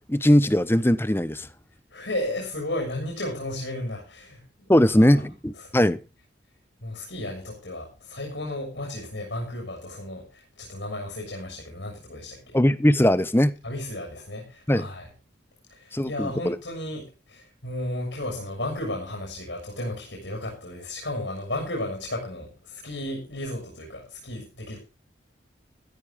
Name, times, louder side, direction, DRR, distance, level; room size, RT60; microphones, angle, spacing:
voice 1, 0.1-1.5 4.7-6.0 12.5-13.5 14.7-14.9 15.9-16.6, equal, 10° left, 15 dB, 0.9 m, -20 dB
voice 2, 1.9-5.1 5.6-5.9 6.8-12.6 13.6-15.1 15.7-24.8, left 1 dB, 75° left, 0 dB, 6.6 m, -34 dB
15.0 x 14.0 x 3.7 m, 0.31 s
head